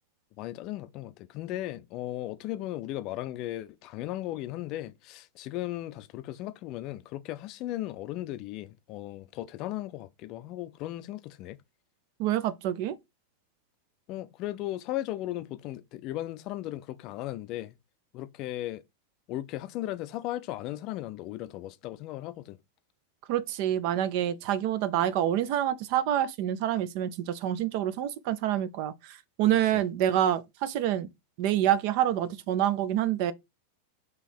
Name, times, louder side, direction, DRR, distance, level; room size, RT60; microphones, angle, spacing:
voice 1, 0.4-11.6 14.1-17.7 18.1-18.8 19.3-22.6 29.7-29.8, left 14 dB, 45° left, 0.4 m, -36 dB
voice 2, 12.2-13.0 23.3-31.1 31.4-33.3, right 11 dB, 55° right, 0.5 m, -27 dB
3.8 x 3.0 x 4.5 m
figure-of-eight pair, 95°, 0 cm